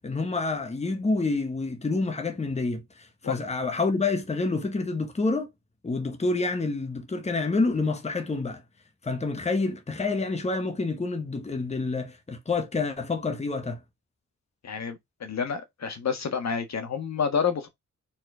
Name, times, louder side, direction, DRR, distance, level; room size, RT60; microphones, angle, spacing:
voice 1, 0.0-5.5 5.8-8.6 9.0-13.8, left 3 dB, 20° left, 1.0 m, -28 dB
voice 2, 14.6-17.7, left 6 dB, 65° left, 1.6 m, -29 dB
4.6 x 4.3 x 4.9 m
wide cardioid pair, 165°, 30 cm